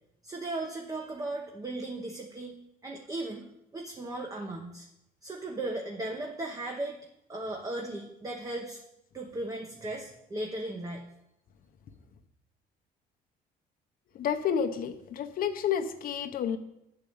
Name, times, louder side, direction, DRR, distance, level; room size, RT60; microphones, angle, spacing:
voice 1, 0.2-2.6 2.8-3.5 3.7-4.9 5.2-7.0 7.3-8.8 9.1-11.1, right 2 dB, 20° right, 1 dB, 0.9 m, -36 dB
voice 2, 14.1-16.6, left 8 dB, 60° left, 7 dB, 0.8 m, -30 dB
8.8 x 4.8 x 7.1 m, 0.85 s
cardioid pair, 110°, 17 cm